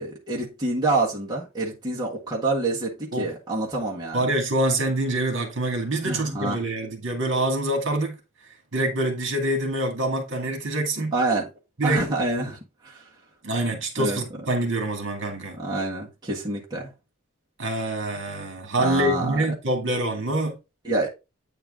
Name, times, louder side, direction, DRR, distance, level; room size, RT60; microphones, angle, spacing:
voice 1, 0.0-4.3 6.0-6.6 11.1-11.4 11.8-12.6 12.8-13.1 14.0-14.2 15.6-16.9 18.8-19.4 20.8-21.1, right 2 dB, 20° right, 1.6 m, -27 dB
voice 2, 4.1-8.2 8.7-11.1 11.8-12.0 13.4-15.6 17.6-20.6, right 1 dB, 60° right, 2.3 m, -25 dB
8.9 x 4.5 x 3.7 m
head